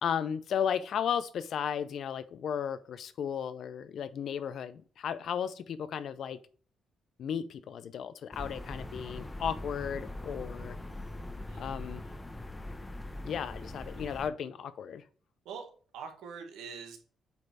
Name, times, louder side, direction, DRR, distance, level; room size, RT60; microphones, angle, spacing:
voice 1, 0.0-6.4 7.2-10.8 11.6-12.0 13.2-15.0, left 8 dB, 65° left, 0.6 m, -34 dB
sound 1, 8.3-14.3, left 1 dB, 15° left, 0.8 m, -41 dB
voice 2, 15.9-17.0, right 6 dB, 90° right, 1.5 m, -43 dB
8.3 x 3.3 x 4.7 m
cardioid pair, 90°, 0 cm